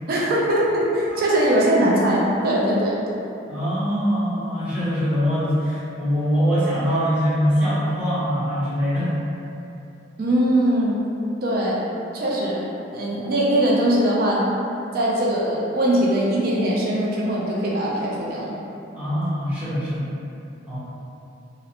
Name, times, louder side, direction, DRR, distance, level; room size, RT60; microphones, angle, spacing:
voice 1, 0.1-3.0 10.2-11.0 11.4-11.9 12.1-12.7 12.9-14.4 14.9-18.6, right 1 dB, 50° right, -4 dB, 0.4 m, -21 dB
voice 2, 3.5-9.1 18.9-20.1 20.7-20.8, equal, 5° right, -11 dB, 0.7 m, -23 dB
2.5 x 2.0 x 2.8 m, 2.8 s
head